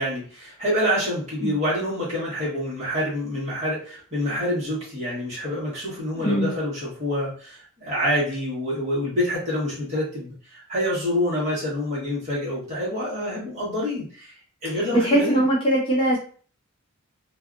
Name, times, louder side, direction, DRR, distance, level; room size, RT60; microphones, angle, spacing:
voice 1, 0.0-14.4 14.6-15.4, left 1 dB, 35° right, -7 dB, 1.3 m, -27 dB
voice 2, 6.2-6.5 14.9-16.2, right 1 dB, 25° left, -3 dB, 0.6 m, -20 dB
2.6 x 2.3 x 2.4 m, 0.43 s
head